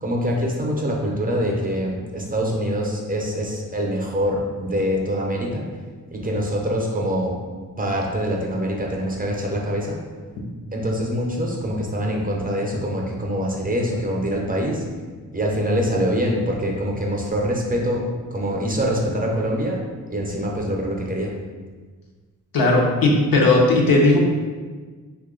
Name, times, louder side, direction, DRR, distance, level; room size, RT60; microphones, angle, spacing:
voice 1, 0.0-5.7 6.1-7.4 7.8-10.0 10.7-14.8 15.3-18.0 18.3-21.3, equal, 25° right, -1 dB, 0.5 m, -24 dB
voice 2, 22.5-24.2, left 2 dB, 80° left, -2 dB, 0.7 m, -16 dB
2.9 x 2.3 x 3.6 m, 1.4 s
cardioid pair, 85°, 33 cm